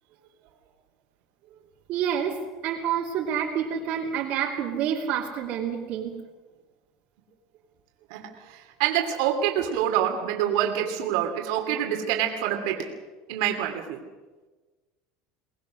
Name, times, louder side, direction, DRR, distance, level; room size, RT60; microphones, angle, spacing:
voice 1, 1.9-2.4 2.6-6.1, right 8 dB, 55° right, -2 dB, 2.7 m, -28 dB
voice 2, 8.1-12.9 13.3-14.0, right 10 dB, 75° right, 3 dB, 2.7 m, -26 dB
23.5 x 19.0 x 6.4 m, 1.3 s
cardioid pair, 140°, 3 cm